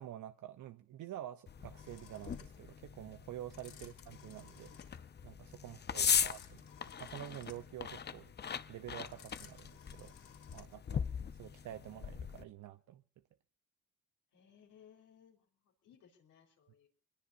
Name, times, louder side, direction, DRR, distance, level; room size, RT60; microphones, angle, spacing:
voice 1, 0.0-4.8 5.2-6.6 7.0-8.3 8.7-10.1 10.5-11.1 11.4-13.0, right 12 dB, 75° right, 0.8 m, -48 dB
sound 1, 1.5-12.4, left 7 dB, 35° left, 0.7 m, -39 dB
sound 2, 1.8-11.0, left 7 dB, 65° left, 4.0 m, -59 dB
voice 2, 14.3-16.9, left 8 dB, 85° left, 4.1 m, -64 dB
24.0 x 21.5 x 2.6 m
cardioid pair, 90°, 30 cm